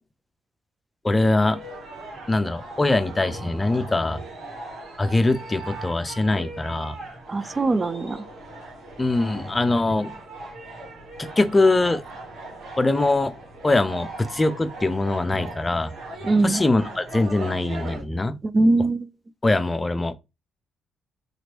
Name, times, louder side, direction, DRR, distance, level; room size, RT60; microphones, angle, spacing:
voice 1, 1.0-1.6 2.3-4.2 5.0-7.0 9.0-10.1 11.2-12.0 12.8-13.3 13.6-15.9 16.4-18.3 19.4-20.1, left 2 dB, 25° left, 0.5 m, -22 dB
sound 1, 1.4-18.0, right 2 dB, 70° right, 1.4 m, -39 dB
voice 2, 7.3-8.2 16.2-16.6 18.4-19.1, right 2 dB, 35° right, 0.3 m, -21 dB
2.9 x 2.5 x 2.9 m
hypercardioid pair, 45°, 0 cm